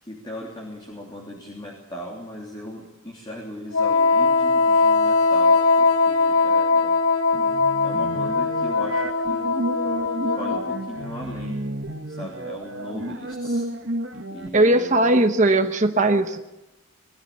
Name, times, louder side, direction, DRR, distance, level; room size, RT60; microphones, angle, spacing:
voice 1, 0.0-7.0 7.8-9.5 10.1-11.6 12.1-13.6 14.3-15.2, left 1 dB, 20° left, -3 dB, 3.2 m, -38 dB
Wind instrument woodwind instrument, 3.7-11.1, left 4 dB, 75° left, 1.0 m, -20 dB
sound 1, 7.3-14.5, right 1 dB, 55° right, 1.3 m, -32 dB
voice 2, 14.5-16.4, right 2 dB, 35° right, 5 dB, 1.0 m, -18 dB
20.5 x 14.5 x 8.5 m, 1.0 s
head